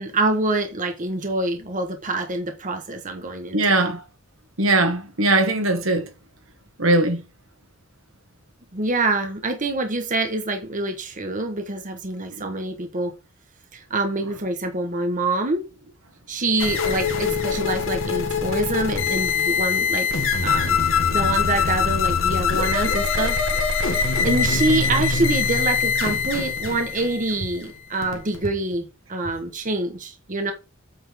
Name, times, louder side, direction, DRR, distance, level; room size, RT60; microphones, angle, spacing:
voice 1, 0.0-3.8 8.7-13.1 13.7-15.6 16.3-20.1 20.4-20.8 21.1-23.4 23.8-30.5, right 2 dB, 40° right, 1.3 m, -26 dB
voice 2, 3.5-4.0 4.6-6.0 6.8-7.2, right 2 dB, 80° right, 1.9 m, -20 dB
sound 1, 16.6-28.5, left 5 dB, 75° left, 1.6 m, -23 dB
8.7 x 3.7 x 4.7 m
head